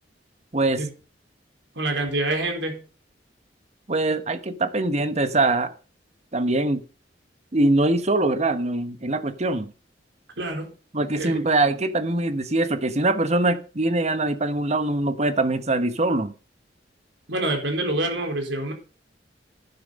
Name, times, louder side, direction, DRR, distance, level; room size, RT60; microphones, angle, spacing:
voice 1, 1.7-2.8 10.4-10.7 11.2-11.4 17.3-18.7, right 2 dB, 80° right, 4.6 m, -26 dB
voice 2, 3.9-5.7 6.3-6.8 7.5-9.7 10.9-16.3, right 2 dB, 40° right, 1.2 m, -23 dB
11.5 x 9.9 x 5.3 m
head